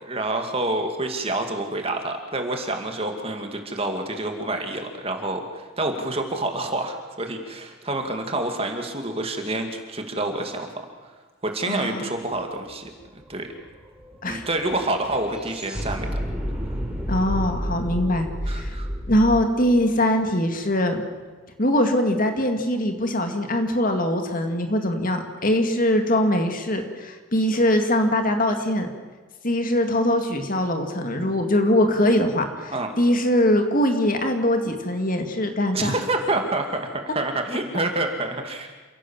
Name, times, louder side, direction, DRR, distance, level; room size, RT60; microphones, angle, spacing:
voice 1, 0.0-10.7 11.4-13.5 14.2-16.2 18.5-18.9 32.7-32.9 35.7-38.7, right 2 dB, 30° right, 4 dB, 2.4 m, -28 dB
voice 2, 11.7-12.1 14.2-14.4 17.1-18.7 19.1-21.0 21.6-28.9 29.4-35.9, left 1 dB, 40° left, 5 dB, 2.3 m, -22 dB
sound 1, 12.4-12.5 12.7-20.9, equal, 5° right, 3.7 m, -31 dB
28.5 x 16.5 x 7.4 m, 1.4 s
head